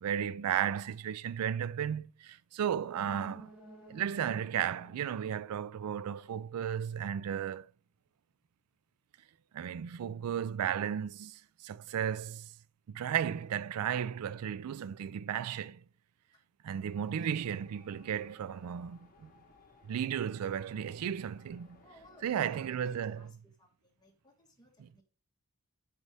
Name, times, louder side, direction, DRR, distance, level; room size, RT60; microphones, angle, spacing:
voice 1, 0.0-3.5 3.9-7.7 9.5-12.5 12.9-15.8 16.6-19.3 19.9-21.8 22.2-23.3, right 9 dB, 75° right, 0.3 m, -34 dB
sound 1, 2.7-6.4 6.8-6.9, right 1 dB, 10° right, 4.1 m, -55 dB
sound 2, 16.9-23.3, left 3 dB, 40° left, 1.3 m, -62 dB
voice 2, 21.8-25.0, left 1 dB, 20° left, 1.8 m, -61 dB
8.2 x 5.0 x 3.4 m
head